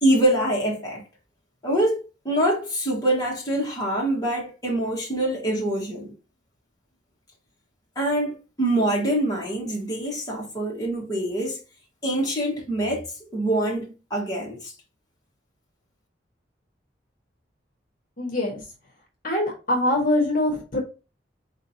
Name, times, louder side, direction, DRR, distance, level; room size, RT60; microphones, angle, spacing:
voice 1, 0.0-1.0 1.6-2.0 2.2-6.1 7.9-11.6 12.0-14.7, right 1 dB, 20° left, 1.6 m, -25 dB
voice 2, 18.2-18.6 19.2-20.8, left 1 dB, 50° left, 1.3 m, -23 dB
4.6 x 3.6 x 2.8 m
head